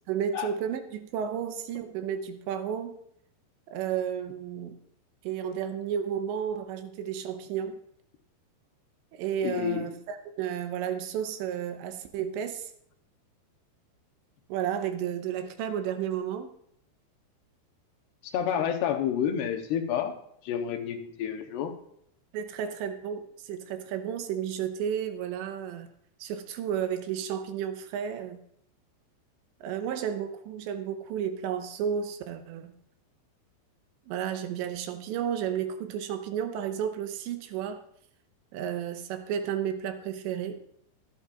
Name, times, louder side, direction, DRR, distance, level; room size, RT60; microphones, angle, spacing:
voice 1, 0.1-3.0 3.7-4.8 5.2-7.8 9.1-12.7 14.5-16.5 22.3-25.9 26.2-28.4 29.6-32.7 34.1-37.8 38.5-40.6, right 8 dB, 85° right, 7 dB, 3.1 m, -32 dB
voice 2, 9.4-9.9 18.2-20.2 20.4-21.8, left 9 dB, 75° left, 6 dB, 2.8 m, -29 dB
24.5 x 8.3 x 2.5 m, 0.70 s
omnidirectional pair, 5.2 m